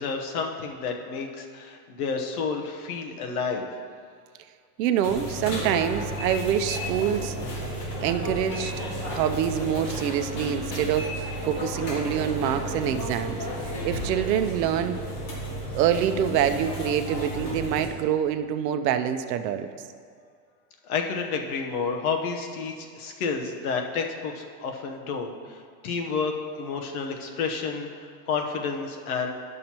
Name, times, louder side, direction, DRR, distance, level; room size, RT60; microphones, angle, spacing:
voice 1, 0.0-3.7 20.8-29.3, left 5 dB, 60° left, 2 dB, 1.0 m, -30 dB
voice 2, 4.8-7.4 8.0-8.7 9.1-15.0 15.7-19.7, right 9 dB, 85° right, 9 dB, 0.7 m, -26 dB
sound 1, 5.0-17.9, equal, 45° left, 1.7 m, -33 dB
10.5 x 6.6 x 2.9 m, 2.3 s
supercardioid pair, 180°, 48 cm